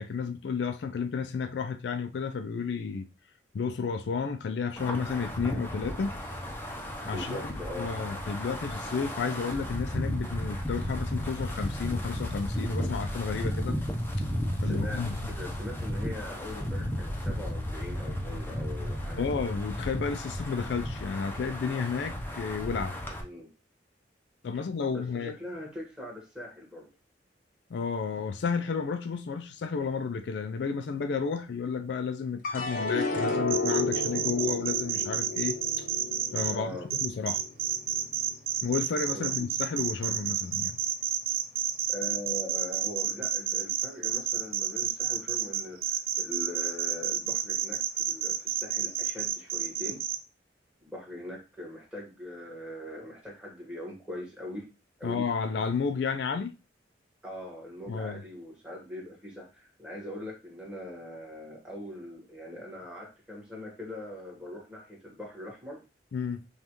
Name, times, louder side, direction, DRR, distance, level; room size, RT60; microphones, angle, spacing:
voice 1, 0.0-3.1 3.5-6.2 7.1-13.8 14.2-14.3 14.6-15.2 19.2-23.0 24.4-25.3 27.7-35.9 36.3-37.4 38.6-40.8 55.0-56.6 57.9-58.2 66.1-66.4, left 5 dB, 75° left, 0.4 m, -32 dB
Wind, 4.8-23.2, equal, 10° left, 0.6 m, -34 dB
voice 2, 7.0-7.9 14.6-19.4 23.2-23.5 24.9-26.9 36.5-36.9 39.1-39.5 41.9-50.0 50.8-54.7 55.0-55.2 57.2-65.8, left 1 dB, 5° right, 1.4 m, -41 dB
sound 1, 32.4-38.9 39.3-40.0, left 3 dB, 50° left, 0.7 m, -33 dB
sound 2, 33.5-36.5 36.9-50.2, right 10 dB, 55° right, 0.4 m, -29 dB
5.2 x 2.4 x 3.0 m
head